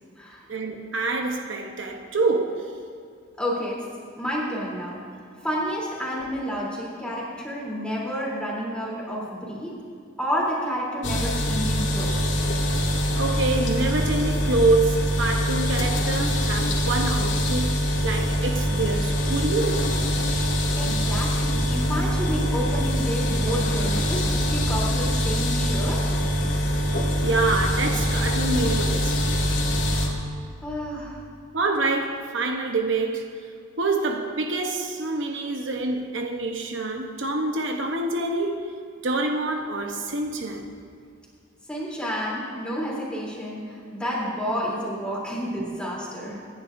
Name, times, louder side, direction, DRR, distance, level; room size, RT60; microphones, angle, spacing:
voice 1, 0.5-2.7 13.1-20.0 27.2-29.2 31.5-33.3 33.8-38.7 39.0-40.7 45.1-45.2 46.4-46.5, right 2 dB, 75° right, 1.0 m, -26 dB
voice 2, 3.4-3.8 4.2-5.0 5.4-9.7 10.2-12.4 20.7-26.0 29.8-30.3 30.6-31.2 41.7-46.4, equal, 5° left, 3.3 m, -30 dB
sound 1, 11.0-30.1, equal, 70° left, 2.4 m, -24 dB
25.5 x 10.5 x 2.6 m
head